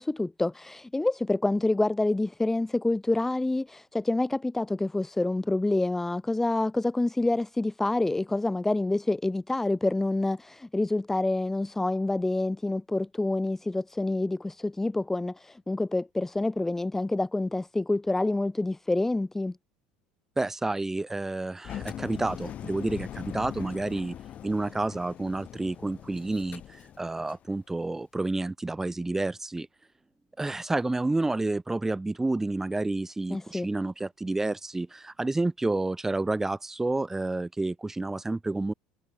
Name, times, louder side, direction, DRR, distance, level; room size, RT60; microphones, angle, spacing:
voice 1, 0.0-19.6 33.3-33.7, left 2 dB, 10° left, 1.7 m, -27 dB
voice 2, 20.4-24.2 24.4-29.7 30.4-38.7, right 2 dB, 10° right, 5.4 m, -30 dB
Engine, 21.6-27.5, left 10 dB, 45° left, 7.8 m, -41 dB
hypercardioid pair, 80°, 3 cm